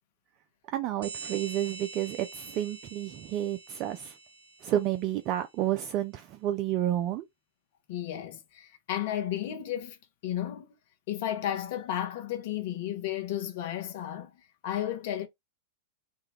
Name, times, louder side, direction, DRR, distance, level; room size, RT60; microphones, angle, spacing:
voice 1, 0.7-4.1 4.6-7.2, right 12 dB, 45° right, 0.4 m, -30 dB
sound 1, 1.0-5.3, right 4 dB, 70° right, 1.7 m, -45 dB
voice 2, 7.9-10.0 10.2-10.7 11.1-14.3 14.6-15.3, left 11 dB, 60° left, 0.7 m, -33 dB
3.6 x 2.2 x 3.2 m
figure-of-eight pair, 95°, 0 cm